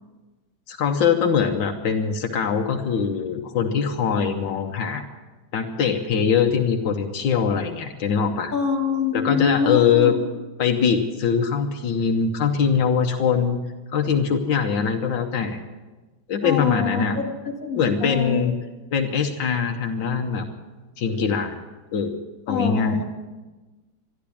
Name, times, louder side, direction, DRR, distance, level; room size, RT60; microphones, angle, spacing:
voice 1, 0.7-5.0 5.5-8.5 9.1-10.1 10.6-13.6 13.9-15.6 16.3-17.2 17.8-18.5 18.9-20.4 21.0-21.5 21.9-22.2 22.5-23.0, left 6 dB, 85° left, 3 dB, 1.7 m, -22 dB
voice 2, 8.5-10.2 16.4-17.1 17.6-18.5 22.5-23.0, left 5 dB, 45° left, 2 dB, 2.4 m, -25 dB
13.5 x 12.0 x 8.5 m, 1.2 s
omnidirectional pair, 2.0 m